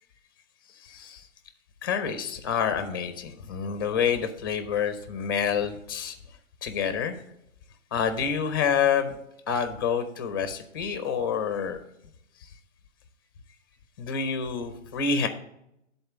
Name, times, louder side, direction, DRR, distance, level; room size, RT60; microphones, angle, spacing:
voice 1, 0.8-1.3 1.8-6.2 6.6-7.2 7.9-9.2 9.5-11.8 14.0-15.3, left 6 dB, 20° left, 9 dB, 0.5 m, -28 dB
10.5 x 4.2 x 7.0 m, 0.78 s
hypercardioid pair, 150°, 39 cm